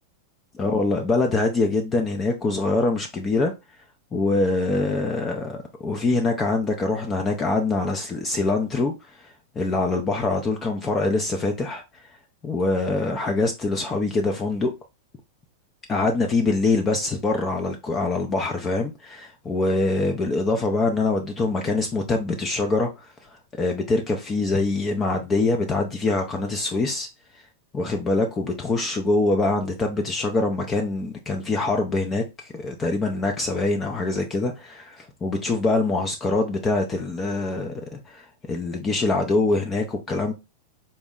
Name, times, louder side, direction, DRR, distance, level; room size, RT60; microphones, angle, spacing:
voice 1, 0.6-3.5 4.1-8.9 9.2-11.8 12.4-14.7 15.9-23.3 23.6-27.1 27.7-40.3, left 3 dB, 20° left, 0.4 m, -24 dB
4.1 x 2.0 x 3.5 m
supercardioid pair, 145°, 0 cm